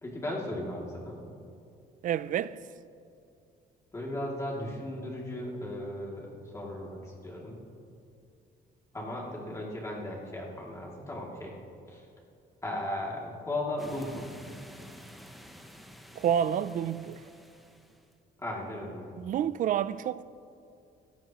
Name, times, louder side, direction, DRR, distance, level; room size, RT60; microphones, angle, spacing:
voice 1, 0.0-1.2 3.9-7.6 8.9-11.5 11.9-12.1 12.6-14.4 18.4-19.1, left 1 dB, 15° left, 2.6 m, -36 dB
voice 2, 2.0-2.6 16.2-17.2 19.2-20.2, right 9 dB, 50° right, 0.4 m, -29 dB
sound 1, 13.8-18.1, equal, ahead, 0.9 m, -50 dB
26.5 x 14.5 x 3.0 m
cardioid pair, 160°, 17 cm